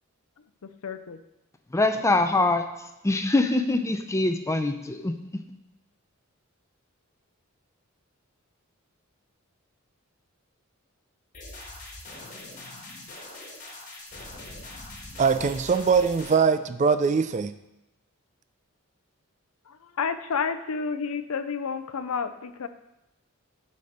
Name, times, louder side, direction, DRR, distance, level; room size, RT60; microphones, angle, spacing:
voice 1, 0.6-1.2 19.7-22.7, left 5 dB, 85° left, 10 dB, 0.6 m, -30 dB
voice 2, 1.7-2.6 3.0-5.4, left 2 dB, 15° left, 6 dB, 0.6 m, -24 dB
sound 1, 11.3-16.3, left 2 dB, 40° left, 1.8 m, -42 dB
voice 3, 15.2-17.5, right 5 dB, 35° right, 12 dB, 0.4 m, -22 dB
8.4 x 4.3 x 6.5 m, 0.91 s
head